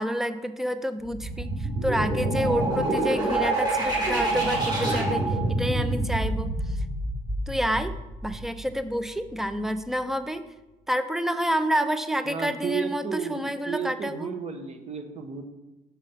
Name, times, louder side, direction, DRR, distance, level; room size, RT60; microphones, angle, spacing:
voice 1, 0.0-6.8 7.5-7.9 8.2-10.4 10.9-14.3, equal, ahead, 10 dB, 0.5 m, -29 dB
sound 1, 1.0-8.6, right 2 dB, 25° right, 3.0 m, -27 dB
voice 2, 12.2-15.4, right 6 dB, 40° right, 6 dB, 1.1 m, -33 dB
7.3 x 5.1 x 5.7 m, 1.1 s
cardioid pair, 110°, 17 cm